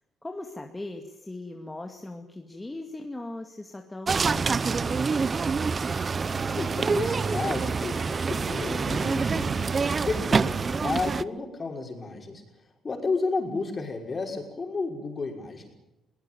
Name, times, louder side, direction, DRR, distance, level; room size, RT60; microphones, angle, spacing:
voice 1, 0.2-5.4, left 2 dB, 15° left, 3 dB, 2.2 m, -39 dB
sound 1, 4.1-11.2, right 5 dB, 35° right, 0.7 m, -26 dB
voice 2, 6.6-9.7 10.0-12.4 12.8-15.7, left 3 dB, 35° left, 3 dB, 5.9 m, -32 dB
22.0 x 18.5 x 9.3 m, 0.95 s
cardioid pair, 90°, 0 cm